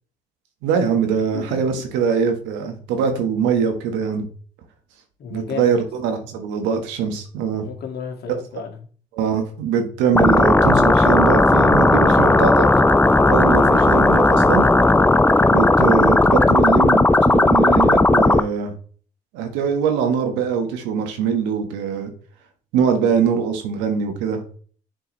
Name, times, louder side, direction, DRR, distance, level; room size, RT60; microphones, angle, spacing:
voice 1, 0.6-4.3 5.3-7.7 9.1-12.7 13.2-14.6 15.5-18.7 19.3-22.1 22.7-24.4, right 6 dB, 85° right, 1.4 m, -22 dB
voice 2, 1.3-1.8 5.2-5.8 7.6-8.8, left 6 dB, 60° left, 2.0 m, -33 dB
sound 1, 10.1-18.4, left 2 dB, 10° left, 0.5 m, -15 dB
7.7 x 4.6 x 3.1 m
supercardioid pair, 60°, 18 cm